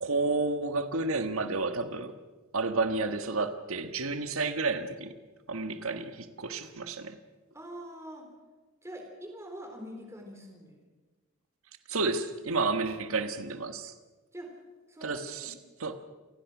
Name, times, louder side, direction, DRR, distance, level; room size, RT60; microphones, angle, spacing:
voice 1, 0.0-2.1 2.5-5.1 5.5-7.2 11.9-13.9 15.0-15.5 15.8-15.9, right 3 dB, 70° right, 9 dB, 1.5 m, -31 dB
voice 2, 7.5-8.3 8.8-10.8 14.3-14.6 14.9-15.5, equal, 15° right, 3 dB, 3.7 m, -44 dB
27.5 x 19.0 x 6.1 m, 1.3 s
head